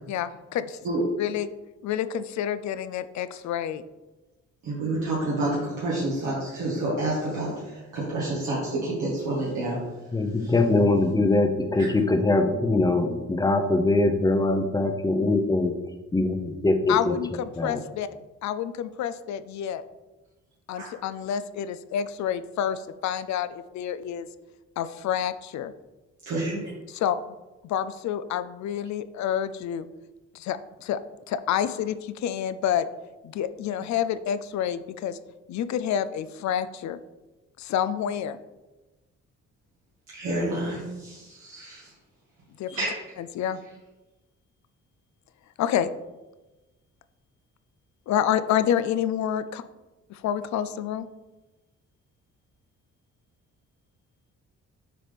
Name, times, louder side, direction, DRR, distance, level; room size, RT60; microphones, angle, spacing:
voice 1, 0.1-0.8 1.2-1.5 1.8-3.8 16.9-18.1 18.4-19.8 20.7-24.3 24.8-25.7 26.9-27.2 27.6-29.9 30.3-31.0 31.3-32.9 33.2-35.2 35.5-37.0 37.6-38.4 42.6-42.9 43.2-43.6 45.6-45.9 48.1-49.6 50.1-51.1, left 9 dB, 70° left, 13 dB, 0.5 m, -28 dB
voice 2, 4.6-9.8 10.4-10.5 11.8-11.9 20.8-20.9 26.2-26.6 40.1-41.8 42.7-42.9, right 2 dB, 80° right, -6 dB, 1.7 m, -29 dB
voice 3, 10.1-15.7 16.1-17.1 17.6-17.8, left 2 dB, 10° left, 5 dB, 0.7 m, -22 dB
7.5 x 4.0 x 3.4 m, 1.1 s
cardioid pair, 90°, 30 cm